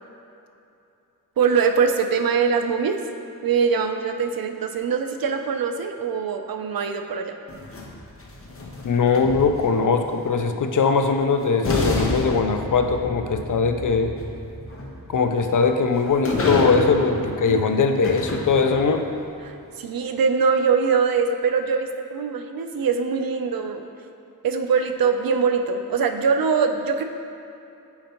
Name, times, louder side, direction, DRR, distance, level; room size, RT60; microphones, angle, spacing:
voice 1, 1.4-3.0 3.4-7.4 17.2-17.6 19.4-23.8 24.4-27.0, right 5 dB, 85° right, 6 dB, 0.5 m, -23 dB
sound 1, 7.5-9.9 11.1-11.2 11.6-19.1, left 1 dB, 40° left, 0.8 m, -29 dB
voice 2, 8.8-14.2 15.1-19.1, left 5 dB, 60° left, 6 dB, 0.5 m, -21 dB
8.7 x 4.3 x 2.9 m, 2.8 s
wide cardioid pair, 95°, 35 cm